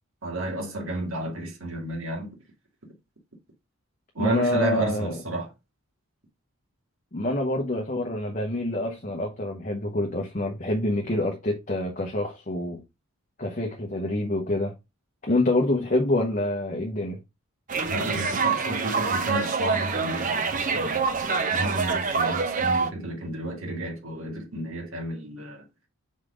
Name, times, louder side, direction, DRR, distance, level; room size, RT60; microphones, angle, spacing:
voice 1, 0.2-2.3 2.8-2.9 4.1-5.5 17.9-20.5 20.7-21.0 21.5-25.6, right 1 dB, 65° right, 2.3 m, -31 dB
voice 2, 4.2-5.1 7.1-12.8 13.4-14.7 15.2-17.2, left 1 dB, 35° left, 1.0 m, -26 dB
sound 1, 17.7-22.9, right 4 dB, 35° right, 0.8 m, -26 dB
5.1 x 4.1 x 4.9 m
head